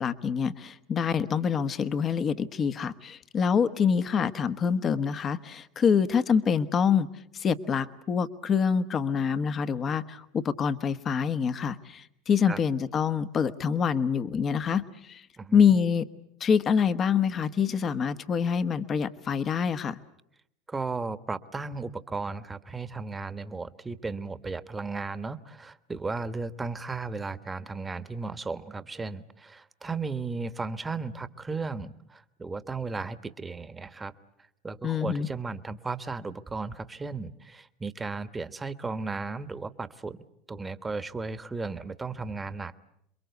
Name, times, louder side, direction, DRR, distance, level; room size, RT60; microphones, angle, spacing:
voice 1, 0.0-7.1 7.3-15.2 15.5-16.1 16.4-20.0 34.8-35.3, left 6 dB, 35° left, 12 dB, 1.2 m, -26 dB
voice 2, 20.7-34.1 34.6-40.2 40.5-42.7, right 4 dB, 15° right, 13 dB, 1.3 m, -35 dB
28.0 x 22.5 x 8.2 m, 0.76 s
hypercardioid pair, 95°, 0 cm